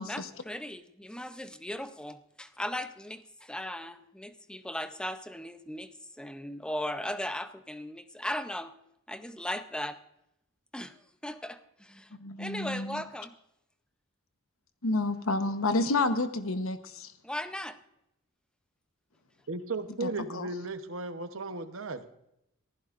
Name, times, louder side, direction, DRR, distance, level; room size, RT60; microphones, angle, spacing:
voice 1, 0.0-8.7 9.1-10.0 10.7-13.3 17.2-17.8, left 1 dB, 5° left, 10 dB, 0.6 m, -38 dB
voice 2, 12.2-13.0 14.8-17.1 20.0-20.5, left 2 dB, 85° left, 9 dB, 1.1 m, -30 dB
voice 3, 19.5-22.0, right 3 dB, 75° right, 9 dB, 1.0 m, -35 dB
25.5 x 15.0 x 2.5 m, 0.84 s
head